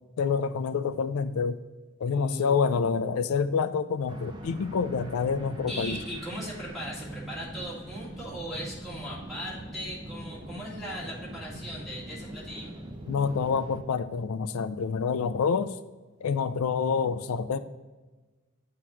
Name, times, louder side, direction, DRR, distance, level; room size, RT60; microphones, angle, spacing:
voice 1, 0.2-1.6 2.0-6.0 13.1-15.7 16.2-17.6, left 5 dB, 75° left, 12 dB, 0.3 m, -27 dB
voice 2, 2.1-2.6 5.7-12.7, equal, ahead, -8 dB, 1.8 m, -39 dB
sound 1, 4.1-13.8, right 1 dB, 20° right, 0.5 m, -42 dB
8.0 x 2.9 x 5.8 m, 1.3 s
head